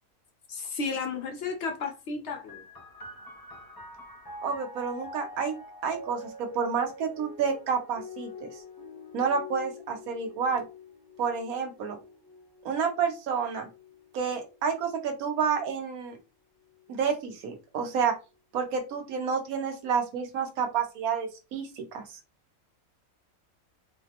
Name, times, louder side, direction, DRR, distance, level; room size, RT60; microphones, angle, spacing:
voice 1, 0.5-2.6, left 4 dB, 65° left, 0.8 m, -33 dB
sound 1, 2.5-15.7 16.6-17.4, left 2 dB, 30° left, 0.4 m, -46 dB
voice 2, 4.4-5.5 5.8-8.5 9.1-10.6 11.2-12.0 12.6-13.7 14.1-16.2 16.9-18.2 18.5-22.2, right 6 dB, 90° right, 1.2 m, -29 dB
4.1 x 2.0 x 2.8 m
omnidirectional pair, 1.5 m